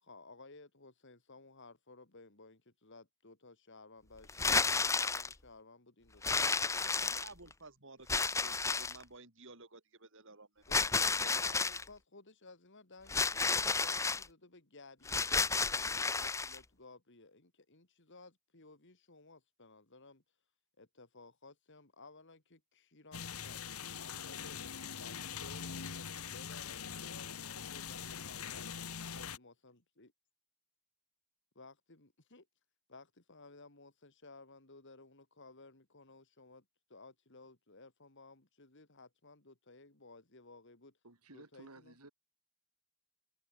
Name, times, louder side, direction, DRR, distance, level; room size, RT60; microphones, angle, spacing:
voice 1, 0.0-7.0 10.7-10.8 11.2-15.2 15.7-20.2 20.8-24.6 24.9-28.7 29.1-30.1 31.5-32.5 32.9-36.6 36.9-41.0 41.3-42.0, left 3 dB, 55° left, 3.0 m, -57 dB
sound 1, 4.3-5.3 6.2-7.5 8.1-9.0 10.7-11.8 13.1-14.2 15.1-16.6, left 4 dB, 15° left, 0.6 m, -31 dB
voice 2, 6.7-11.6, right 3 dB, 60° right, 7.1 m, -56 dB
sound 2, 23.1-29.4, left 7 dB, 75° left, 1.6 m, -43 dB
voice 3, 41.0-42.1, right 2 dB, 85° right, 4.9 m, -55 dB
head